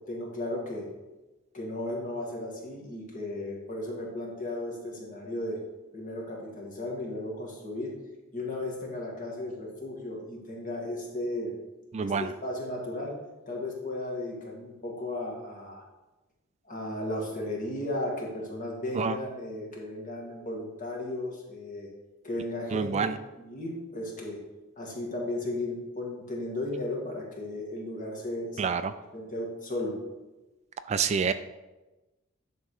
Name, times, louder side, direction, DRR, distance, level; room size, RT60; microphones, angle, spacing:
voice 1, 0.1-0.9 1.5-5.6 5.9-8.0 8.3-11.5 12.0-13.2 13.5-15.8 16.6-21.9 22.2-23.0 23.4-24.4 24.8-28.7 29.1-30.0, left 1 dB, 40° left, -1 dB, 2.1 m, -35 dB
voice 2, 11.9-12.3 19.0-19.1 22.7-23.1 28.6-28.9 30.9-31.3, right 6 dB, 35° right, 11 dB, 0.3 m, -27 dB
11.0 x 3.8 x 6.4 m, 1.1 s
head